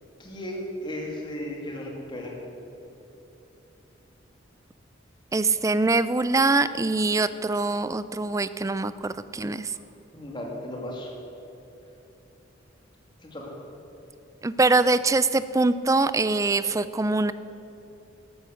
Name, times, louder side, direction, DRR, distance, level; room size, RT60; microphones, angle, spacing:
voice 1, 0.2-2.4 10.1-11.1 13.2-13.6, left 1 dB, 25° left, -1 dB, 2.6 m, -35 dB
voice 2, 5.3-9.7 14.4-17.3, right 3 dB, 15° right, 14 dB, 0.4 m, -23 dB
13.5 x 12.5 x 6.5 m, 3.0 s
head